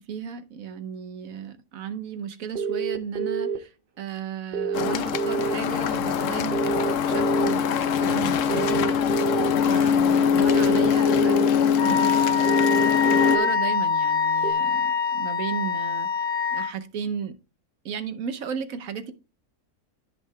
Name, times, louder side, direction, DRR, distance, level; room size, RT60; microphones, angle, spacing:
voice 1, 0.0-9.0 9.4-11.4 11.6-16.2 16.5-17.3 17.8-19.1, right 7 dB, 65° right, 9 dB, 1.2 m, -35 dB
sound 1, 2.6-3.6 4.5-5.5 6.5-7.5 8.5-9.5 10.5-11.5 12.4-13.5 14.4-14.5, right 7 dB, 45° right, 0.8 m, -27 dB
sound 2, 4.7-13.4, left 7 dB, 65° left, 0.9 m, -22 dB
Wind instrument woodwind instrument, 11.8-16.7, left 6 dB, 90° left, 1.3 m, -24 dB
13.5 x 5.6 x 2.3 m, 0.31 s
omnidirectional pair, 1.6 m